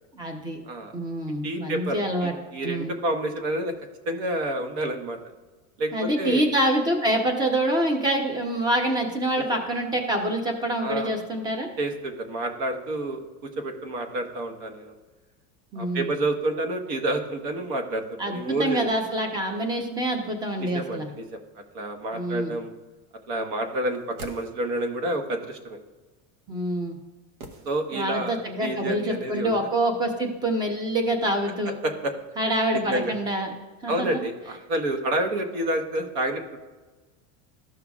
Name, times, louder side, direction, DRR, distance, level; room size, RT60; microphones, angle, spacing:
voice 1, 0.1-0.6 0.9-2.3 2.6-2.9 5.9-11.7 15.7-16.2 18.2-21.1 22.1-22.6 26.5-27.0 27.9-31.8 32.4-33.5 33.8-34.1, right 1 dB, 10° right, 4 dB, 0.8 m, -26 dB
voice 2, 1.4-3.7 4.0-5.2 5.8-6.5 9.4-9.6 10.8-11.2 11.8-13.2 13.6-14.9 15.7-18.0 18.3-18.8 20.6-21.4 21.7-22.7 23.3-25.8 27.6-29.5 31.8-32.1 32.9-33.1 33.9-36.6, right 1 dB, 50° right, 5 dB, 1.3 m, -29 dB
sound 1, 23.8-25.0 27.4-28.3 28.6-28.7, right 2 dB, 70° right, 1.3 m, -45 dB
14.0 x 5.7 x 2.4 m, 1.3 s
supercardioid pair, 170°, 40 cm